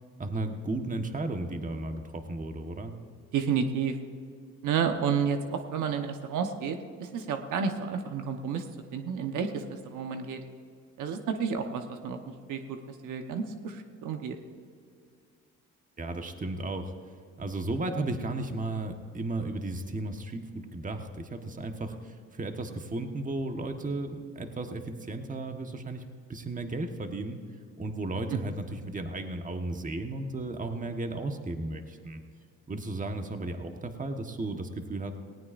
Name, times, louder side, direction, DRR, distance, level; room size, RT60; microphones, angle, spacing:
voice 1, 0.2-3.0 16.0-16.9 17.4-26.0 26.3-27.4 27.8-32.2 32.7-35.2, right 2 dB, 25° right, 5 dB, 1.3 m, -34 dB
voice 2, 3.3-4.0 4.6-8.6 8.9-10.4 11.0-12.2 12.5-12.8 13.0-14.4 28.3-28.4, right 6 dB, 80° right, 6 dB, 1.1 m, -31 dB
18.5 x 17.5 x 2.6 m, 2.3 s
cardioid pair, 90°, 30 cm